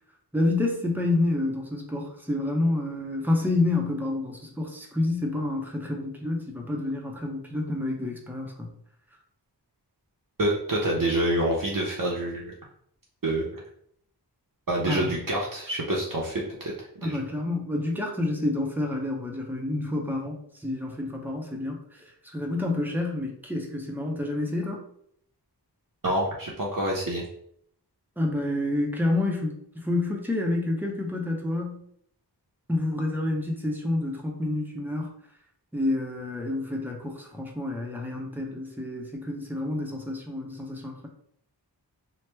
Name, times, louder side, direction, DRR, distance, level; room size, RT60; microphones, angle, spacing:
voice 1, 0.3-8.7 14.9-15.1 17.0-24.8 28.2-31.8 32.7-35.1 35.7-41.1, left 2 dB, 5° right, 0 dB, 0.6 m, -28 dB
voice 2, 10.4-12.5 13.2-13.6 14.7-17.2 26.0-27.2, right 1 dB, 55° right, -4 dB, 0.6 m, -27 dB
3.0 x 2.1 x 3.3 m, 0.69 s
wide cardioid pair, 45°, 41 cm